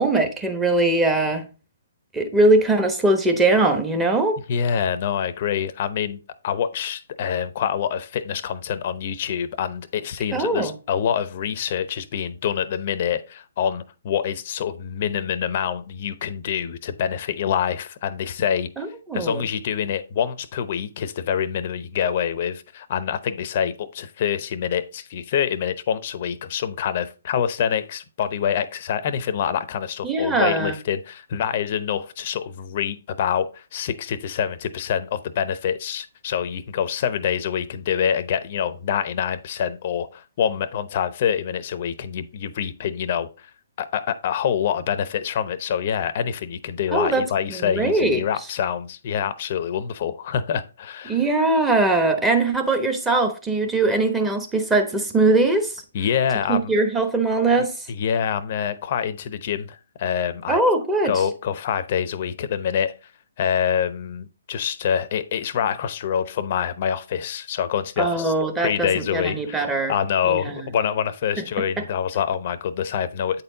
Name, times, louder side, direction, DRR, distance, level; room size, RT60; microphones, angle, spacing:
voice 1, 0.0-1.5 2.1-4.4 10.3-10.7 18.8-19.5 30.0-30.8 46.9-48.2 51.1-55.8 56.5-57.9 60.5-61.3 68.0-69.9 70.2-70.7 71.8-71.9, right 2 dB, 10° right, 1.1 m, -21 dB
voice 2, 4.5-18.7 19.1-43.5 43.8-51.2 55.9-56.7 57.9-60.6 61.0-62.9 63.4-68.3 68.6-73.4, left 8 dB, 45° left, 0.7 m, -26 dB
8.5 x 4.4 x 3.9 m
hypercardioid pair, 140°, 0 cm